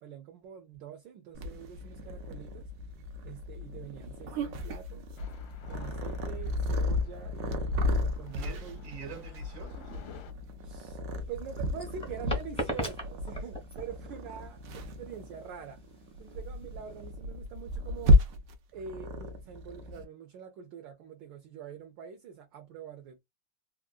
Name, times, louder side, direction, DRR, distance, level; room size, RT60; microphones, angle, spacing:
voice 1, 0.0-2.7 3.2-5.1 5.7-8.8 10.6-11.0 11.3-15.8 16.2-18.2 18.7-23.2, right 7 dB, 70° right, 1.2 m, -45 dB
Purr, 1.3-20.0, left 1 dB, 85° right, 0.7 m, -32 dB
sound 1, 5.2-10.3, left 7 dB, 70° left, 0.9 m, -54 dB
voice 2, 8.3-9.9, right 6 dB, 45° right, 1.2 m, -45 dB
sound 2, 11.1-17.1, equal, 5° left, 0.5 m, -38 dB
3.6 x 2.4 x 2.4 m
omnidirectional pair, 2.3 m